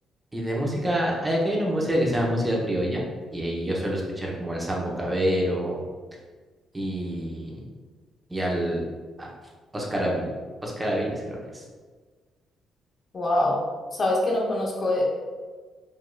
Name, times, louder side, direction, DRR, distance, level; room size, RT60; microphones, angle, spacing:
voice 1, 0.3-3.0 3.3-5.8 6.7-7.5 8.3-8.8 9.2-9.3 9.7-10.3 10.6-11.6, equal, 15° right, -3 dB, 0.8 m, -26 dB
voice 2, 13.1-13.6 14.0-15.1, left 1 dB, 40° left, -2 dB, 0.9 m, -24 dB
5.0 x 2.9 x 2.3 m, 1.4 s
cardioid pair, 90°, 0 cm